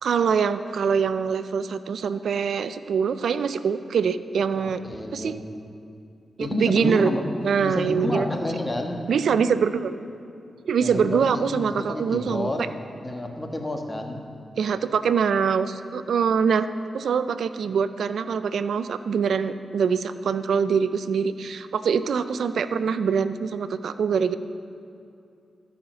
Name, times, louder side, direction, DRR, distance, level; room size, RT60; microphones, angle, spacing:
voice 1, 0.0-4.8 5.1-5.4 6.4-7.1 7.4-8.3 9.1-9.9 10.6-12.5 14.6-16.7 16.9-24.4, right 6 dB, 80° right, 13 dB, 0.4 m, -24 dB
voice 2, 4.5-5.4 6.4-7.2 7.6-9.0 10.8-12.7 13.0-14.2, left 1 dB, 20° left, 3 dB, 1.5 m, -29 dB
13.0 x 5.7 x 6.9 m, 2.5 s
cardioid pair, 50°, 0 cm